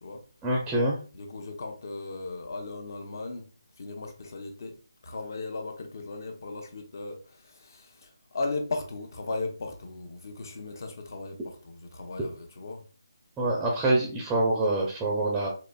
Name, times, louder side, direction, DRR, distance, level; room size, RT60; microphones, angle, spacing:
voice 1, 0.4-1.0 13.4-15.5, right 2 dB, 10° right, 0.5 m, -25 dB
voice 2, 1.1-3.5 3.8-4.8 5.0-12.8, left 3 dB, 50° left, 0.7 m, -37 dB
3.9 x 2.5 x 2.2 m
figure-of-eight pair, 155°, 2 cm